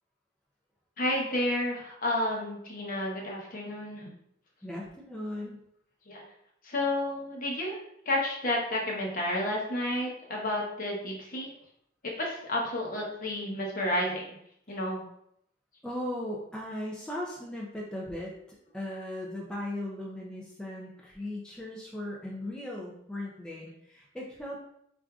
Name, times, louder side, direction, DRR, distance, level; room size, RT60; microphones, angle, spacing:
voice 1, 1.0-4.1 6.1-6.2 6.6-7.8 8.1-11.5 12.2-14.4 14.7-15.0, left 1 dB, 50° left, -2 dB, 0.8 m, -31 dB
voice 2, 4.6-5.6 15.8-24.6, left 1 dB, 5° left, -4 dB, 0.4 m, -38 dB
4.5 x 2.5 x 2.3 m, 0.73 s
head